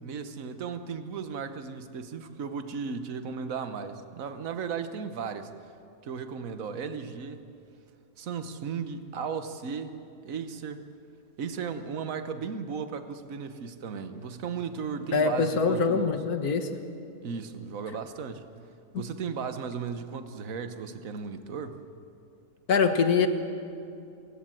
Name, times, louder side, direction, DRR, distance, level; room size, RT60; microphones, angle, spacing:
voice 1, 0.0-5.5 6.0-7.5 8.2-10.9 11.4-16.1 17.2-18.4 19.0-21.8, right 6 dB, 65° right, 9 dB, 1.5 m, -36 dB
voice 2, 15.1-16.7 18.9-19.0 22.7-23.3, left 5 dB, 75° left, 7 dB, 1.9 m, -24 dB
28.5 x 17.0 x 7.7 m, 2.6 s
omnidirectional pair, 1.6 m